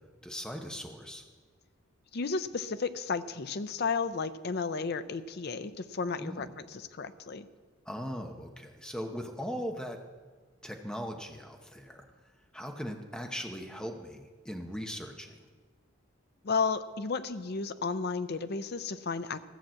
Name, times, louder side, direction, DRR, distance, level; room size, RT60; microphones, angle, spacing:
voice 1, 0.2-1.2 6.2-6.5 7.9-10.0 10.6-12.0 12.5-15.4, equal, 5° left, 3 dB, 0.9 m, -39 dB
voice 2, 2.1-7.5 16.4-19.4, left 4 dB, 50° left, 12 dB, 0.5 m, -33 dB
14.0 x 6.0 x 7.6 m, 1.5 s
head